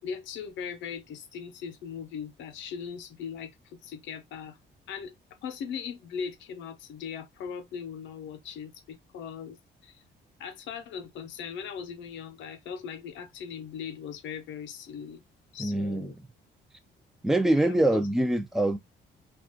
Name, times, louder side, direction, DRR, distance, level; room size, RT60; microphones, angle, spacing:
voice 1, 0.0-4.6 4.9-5.1 5.4-9.6 9.8-10.0 10.4-15.2 15.5-16.2 17.6-17.9, left 7 dB, 80° left, 0.7 m, -39 dB
voice 2, 15.6-16.1 17.2-18.8, right 1 dB, ahead, 0.3 m, -24 dB
2.4 x 2.4 x 3.6 m
cardioid pair, 150°, 19 cm